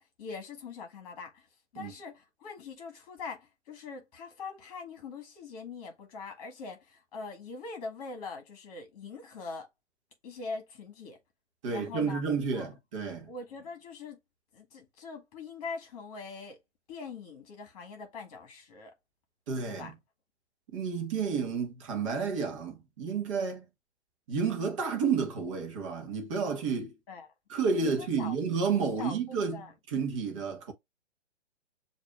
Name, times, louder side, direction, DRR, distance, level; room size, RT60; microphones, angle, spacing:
voice 1, 0.0-1.5 1.7-9.7 10.2-11.2 11.7-12.2 12.5-12.7 13.3-14.2 14.5-16.6 16.9-18.9 19.6-19.9 27.1-27.3 27.8-28.4 29.0-29.2 29.5-29.7, left 4 dB, 35° left, 1.6 m, -42 dB
voice 2, 11.6-13.3 19.5-19.9 20.7-23.6 24.3-26.9 27.5-30.7, right 5 dB, 25° right, 1.0 m, -31 dB
6.5 x 2.7 x 2.2 m
figure-of-eight pair, 125°, 35 cm